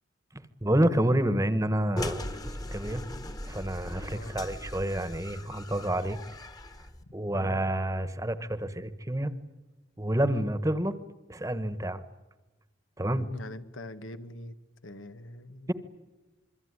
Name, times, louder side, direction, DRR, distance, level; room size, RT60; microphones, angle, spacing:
voice 1, 0.3-2.3 2.7-3.0 3.5-6.2 7.1-9.3 10.0-11.0 11.3-12.0 13.0-13.3, right 1 dB, 15° right, 13 dB, 1.2 m, -28 dB
sound 1, 2.0-7.0, left 1 dB, 20° left, 1.4 m, -39 dB
voice 2, 4.0-4.4 7.0-7.6 10.3-10.4 13.1-14.6 14.8-15.7, left 1 dB, 90° left, 10 dB, 1.7 m, -44 dB
26.5 x 23.0 x 9.8 m, 1.1 s
head